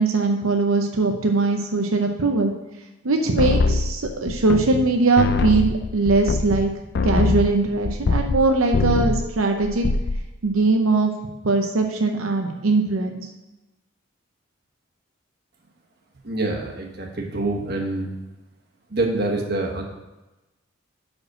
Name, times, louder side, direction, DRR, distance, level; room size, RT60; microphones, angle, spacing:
voice 1, 0.0-2.5 3.0-6.7 7.0-9.9 10.4-11.1 11.4-13.3, right 3 dB, 90° right, 4 dB, 0.7 m, -21 dB
sound 1, 3.4-4.9 5.2-8.4 8.7-9.3 9.6-10.2, left 3 dB, 50° left, 0.4 m, -23 dB
voice 2, 16.2-18.2 18.9-19.8, right 2 dB, 50° right, 0 dB, 1.2 m, -26 dB
6.0 x 5.2 x 6.0 m, 1.1 s
head